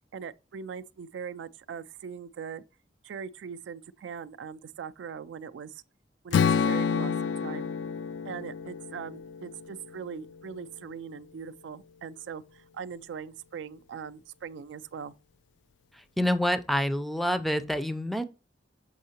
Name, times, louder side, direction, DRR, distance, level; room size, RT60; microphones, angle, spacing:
voice 1, 0.1-2.6 3.0-5.7 6.2-7.7 8.2-15.1, right 6 dB, 75° right, 0.3 m, -40 dB
Strum, 6.3-10.5, left 6 dB, 75° left, 0.3 m, -29 dB
voice 2, 16.2-18.2, equal, ahead, 0.4 m, -27 dB
6.4 x 5.5 x 2.8 m
head